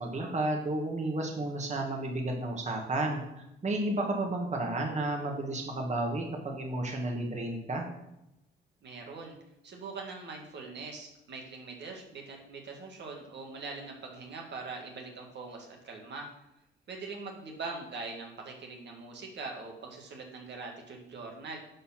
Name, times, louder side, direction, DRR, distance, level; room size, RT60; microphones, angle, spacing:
voice 1, 0.0-3.2 3.6-7.8, right 2 dB, 35° right, 1 dB, 2.0 m, -32 dB
voice 2, 8.8-9.4 9.6-16.3 16.9-21.6, right 3 dB, 60° right, 1 dB, 2.0 m, -42 dB
11.0 x 4.4 x 5.9 m, 0.88 s
cardioid pair, 90°, 20 cm